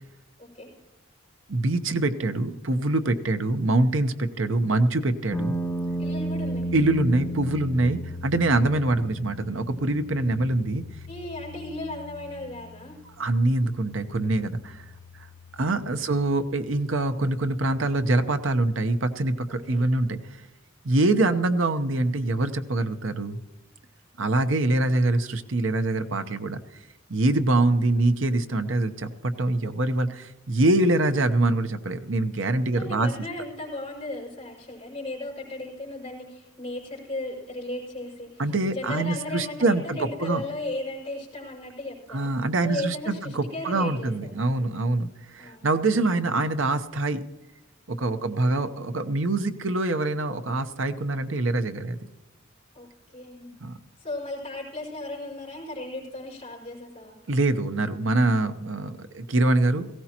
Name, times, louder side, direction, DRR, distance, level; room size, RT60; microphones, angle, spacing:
voice 1, 0.4-0.7 6.0-6.7 11.1-13.0 19.7-19.8 27.6-27.9 32.7-38.4 38.7-42.3 42.6-44.3 45.4-45.7 48.4-48.6 52.7-52.9 53.1-53.5 54.0-57.2, left 2 dB, 30° left, -3 dB, 5.3 m, -36 dB
voice 2, 1.5-5.6 6.7-10.8 13.2-14.8 15.2-15.3 15.5-20.4 20.8-23.4 24.2-26.8 27.1-33.1 38.4-40.4 42.1-47.2 47.9-52.0 53.6-53.8 57.3-59.9, right 2 dB, 75° right, 8 dB, 0.9 m, -24 dB
sound 1, 5.3-19.3, right 1 dB, 10° left, 1.8 m, -36 dB
18.0 x 16.0 x 2.9 m, 1.0 s
head